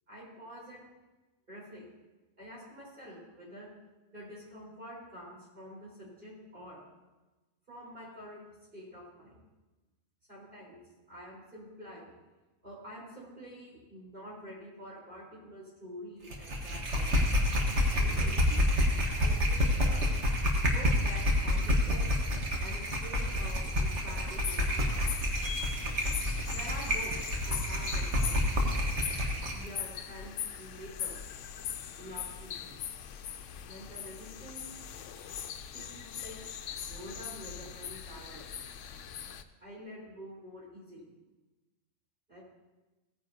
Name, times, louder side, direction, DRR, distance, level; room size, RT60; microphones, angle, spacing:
voice 1, 0.1-0.9 1.5-1.8 2.4-3.7 4.1-6.8 7.7-8.5 8.7-9.4 10.3-10.8 11.1-12.1 12.6-17.2 17.9-20.0 20.6-22.1 22.6-25.3 26.5-28.8 29.5-31.2 32.0-32.8 33.6-34.6 35.7-36.4 36.8-38.4 39.6-41.1 42.3-42.4, equal, 40° right, -7 dB, 4.6 m, -47 dB
sound 1, 16.3-29.7, left 1 dB, 60° right, 1.7 m, -28 dB
sound 2, 24.3-39.4, left 8 dB, 75° left, 0.9 m, -41 dB
16.5 x 9.5 x 2.8 m, 1.1 s
omnidirectional pair, 1.4 m